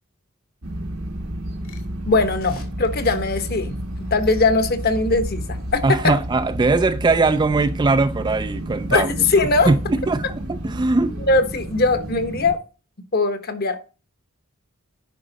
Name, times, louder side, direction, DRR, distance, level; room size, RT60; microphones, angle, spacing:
sound 1, 0.6-12.5, equal, 85° right, 1.8 m, -31 dB
sound 2, 1.6-4.4 5.0-6.2, left 2 dB, 70° left, 2.3 m, -42 dB
voice 1, 2.1-3.8 4.1-6.1 8.9-9.7 11.3-12.6 13.1-13.9, left 3 dB, 45° left, 1.1 m, -20 dB
voice 2, 5.8-9.3 9.7-9.8 10.1-11.2, right 3 dB, 20° right, 0.3 m, -20 dB
10.5 x 5.0 x 4.0 m
head